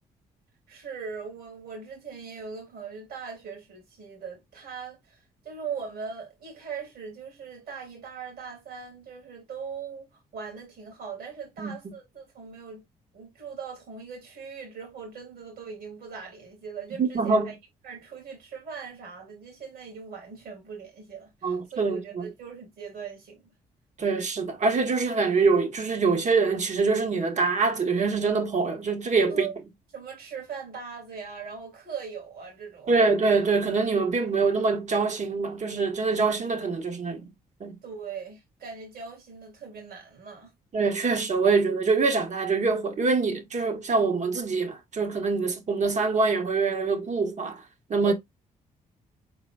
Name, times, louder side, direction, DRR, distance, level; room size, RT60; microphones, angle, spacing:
voice 1, 0.7-10.1 10.3-12.8 13.1-17.6 17.8-23.5 29.3-29.5 29.9-33.0 37.8-40.5 48.1-48.2, right 6 dB, 70° right, 2.4 m, -40 dB
voice 2, 17.0-17.5 21.4-22.3 24.0-29.5 32.9-37.3 37.6-37.8 40.7-47.6 47.9-48.1, right 4 dB, 45° right, 1.1 m, -24 dB
4.2 x 3.9 x 2.3 m
supercardioid pair, 60°, 16 cm